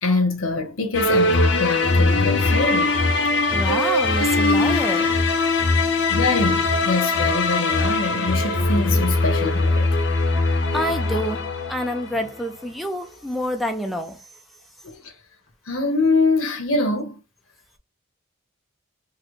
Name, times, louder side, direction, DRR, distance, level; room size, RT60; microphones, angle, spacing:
voice 1, 0.0-3.0 6.1-9.9 14.8-15.1 15.7-17.2, left 3 dB, 80° left, 0.9 m, -24 dB
sound 1, 0.9-12.3, left 2 dB, 60° left, 0.6 m, -21 dB
voice 2, 3.5-5.2 10.7-14.3, equal, ahead, 0.3 m, -27 dB
3.8 x 2.1 x 3.1 m
head